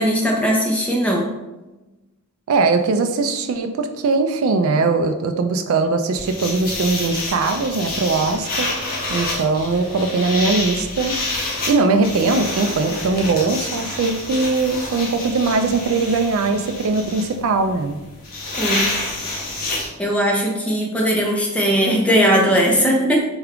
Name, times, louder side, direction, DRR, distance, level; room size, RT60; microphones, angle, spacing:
voice 1, 0.0-1.3 18.6-18.9 20.0-23.2, equal, 5° left, -2 dB, 0.6 m, -18 dB
voice 2, 2.5-8.7 9.1-11.2 11.7-18.0, right 3 dB, 70° right, 6 dB, 0.3 m, -20 dB
sound 1, 6.1-19.9, left 2 dB, 45° left, 0.8 m, -28 dB
3.3 x 2.3 x 3.5 m, 1.1 s
head